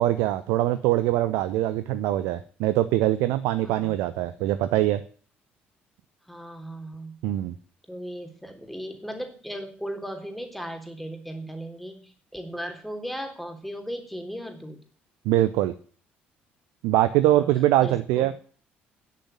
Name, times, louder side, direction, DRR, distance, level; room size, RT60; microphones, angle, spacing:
voice 1, 0.0-5.0 7.2-7.5 15.2-15.7 16.8-18.3, right 14 dB, 65° right, 12 dB, 0.8 m, -23 dB
voice 2, 3.6-4.0 6.3-7.2 7.9-14.8 17.3-17.5 17.8-18.3, equal, ahead, 5 dB, 3.5 m, -37 dB
10.0 x 8.5 x 9.3 m, 0.44 s
figure-of-eight pair, 50°, 5 cm